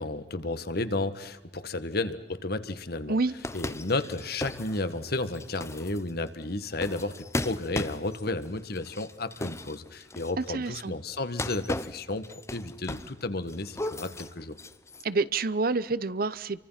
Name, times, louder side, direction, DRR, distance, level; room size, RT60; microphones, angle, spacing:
voice 1, 0.0-3.2 3.5-14.5, left 2 dB, 60° left, 1.7 m, -32 dB
sound 1, 3.4-10.5 11.2-13.2 13.5-15.0, left 2 dB, 15° left, 0.8 m, -37 dB
voice 2, 10.4-10.9 15.0-16.7, right 3 dB, 55° right, 0.8 m, -28 dB
29.5 x 24.5 x 5.8 m
head